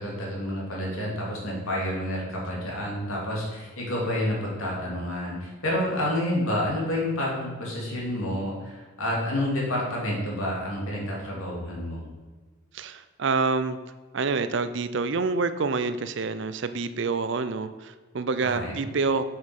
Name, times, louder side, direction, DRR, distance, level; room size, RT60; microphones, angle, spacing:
voice 1, 0.0-12.1 18.5-18.8, left 1 dB, 80° left, -3 dB, 3.0 m, -29 dB
voice 2, 12.7-13.8 14.1-19.2, right 4 dB, 55° right, 12 dB, 0.5 m, -27 dB
7.9 x 6.4 x 5.4 m, 1.4 s
head